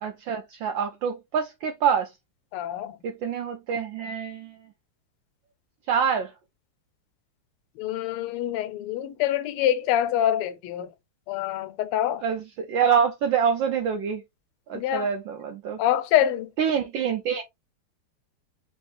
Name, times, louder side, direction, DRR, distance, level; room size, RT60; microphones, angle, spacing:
voice 1, 0.0-2.1 3.0-4.5 5.9-6.3 12.2-12.4 12.7-14.2 14.7-15.8 16.6-17.4, right 7 dB, 75° right, 1.2 m, -26 dB
voice 2, 2.5-3.0 7.8-10.9 11.3-12.2 14.7-15.1 15.8-16.5, left 11 dB, 90° left, 1.5 m, -25 dB
3.4 x 3.0 x 3.2 m
omnidirectional pair, 2.4 m